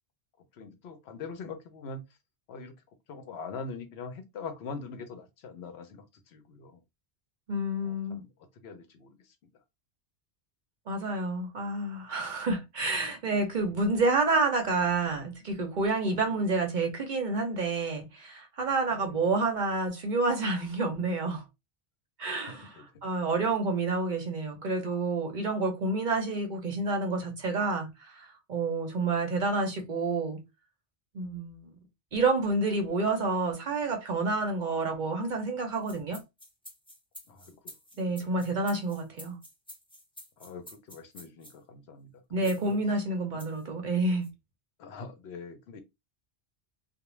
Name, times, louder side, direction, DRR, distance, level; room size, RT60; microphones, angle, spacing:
voice 1, 0.5-2.0 2.5-2.7 3.1-6.8 7.8-8.3 8.5-9.3 16.1-16.4 18.9-19.2 22.5-23.0 37.3-37.6 37.9-38.3 40.4-42.8 43.3-43.5 44.8-45.8, left 4 dB, 75° left, 0.8 m, -43 dB
voice 2, 7.5-8.2 10.9-21.4 22.2-22.7 23.0-30.4 31.1-31.7 32.1-36.2 38.0-39.4 42.3-44.3, right 3 dB, 55° right, 0.6 m, -29 dB
sound 1, 35.7-41.6 42.4-42.7 43.4-43.6 44.2-44.3, equal, 5° left, 0.5 m, -49 dB
2.4 x 2.0 x 3.0 m
omnidirectional pair, 1.1 m